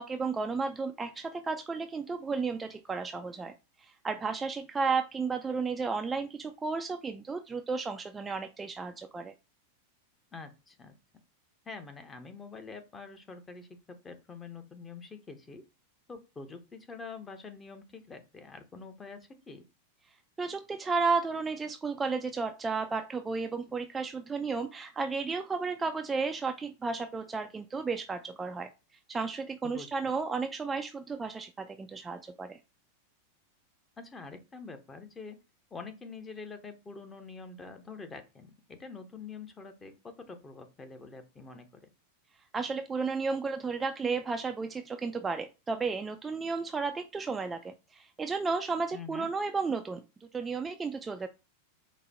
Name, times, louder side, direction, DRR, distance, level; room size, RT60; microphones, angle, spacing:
voice 1, 0.0-9.3 20.4-28.7 29.1-32.6 42.5-50.0 50.3-51.3, right 4 dB, 15° right, 6 dB, 0.3 m, -33 dB
voice 2, 10.3-10.9 11.6-15.6 16.1-19.6 29.6-30.1 34.0-35.4 35.7-41.7 48.9-49.3, left 4 dB, 15° left, 7 dB, 0.7 m, -46 dB
4.9 x 2.2 x 4.0 m, 0.28 s
figure-of-eight pair, 90°, 0 cm